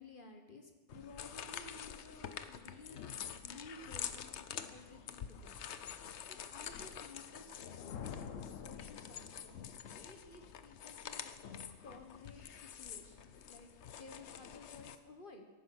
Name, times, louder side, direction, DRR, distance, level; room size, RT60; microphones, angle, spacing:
voice 1, 0.0-5.7 6.3-15.5, left 2 dB, 40° left, 4 dB, 1.5 m, -55 dB
sound 1, 0.9-14.9, left 8 dB, 65° left, 1.0 m, -47 dB
sound 2, 7.9-10.1, left 7 dB, 85° left, 1.2 m, -48 dB
14.0 x 11.5 x 6.1 m, 1.3 s
omnidirectional pair, 1.3 m